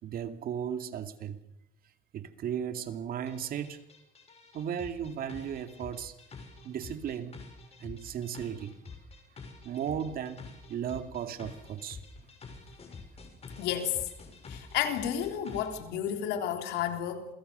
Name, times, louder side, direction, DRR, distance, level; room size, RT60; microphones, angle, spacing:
voice 1, 0.0-1.4 2.1-3.8 4.5-6.2 6.6-7.4 7.8-8.8 9.6-12.0, right 9 dB, 60° right, 2.5 m, -36 dB
sound 1, 3.3-15.8, left 4 dB, 40° left, 6.4 m, -48 dB
voice 2, 13.6-14.1 14.5-17.3, left 9 dB, 90° left, 3.7 m, -31 dB
28.0 x 22.0 x 6.9 m
cardioid pair, 110°, 17 cm